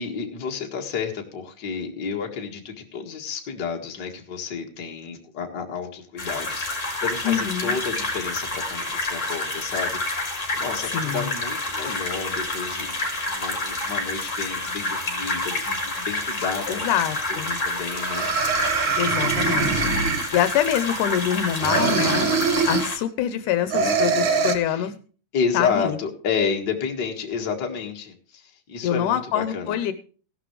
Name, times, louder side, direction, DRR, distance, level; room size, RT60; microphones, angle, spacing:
voice 1, 0.0-10.2 10.5-18.9 24.7-24.9 25.3-29.8, left 6 dB, 40° left, 2 dB, 2.1 m, -31 dB
sound 1, 6.2-23.0, left 2 dB, 20° left, 4.2 m, -28 dB
voice 2, 7.2-7.8 10.9-11.3 16.7-17.6 19.0-19.8 20.1-22.3 22.7-25.0 25.5-26.0 28.8-29.9, left 10 dB, 80° left, 12 dB, 2.3 m, -25 dB
sound 2, 17.3-17.4 17.9-20.7 21.6-22.9 23.7-24.5, right 5 dB, 50° right, 1.6 m, -23 dB
16.0 x 11.5 x 3.2 m, 0.38 s
omnidirectional pair, 3.7 m